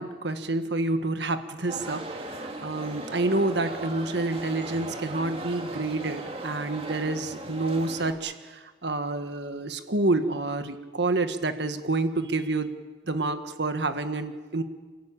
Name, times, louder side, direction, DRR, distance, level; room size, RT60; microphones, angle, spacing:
voice 1, 0.0-12.7 13.1-14.6, right 2 dB, 70° right, 9 dB, 1.6 m, -28 dB
sound 1, 1.7-8.1, right 2 dB, 30° right, 2.4 m, -38 dB
29.5 x 13.5 x 8.9 m, 1.4 s
head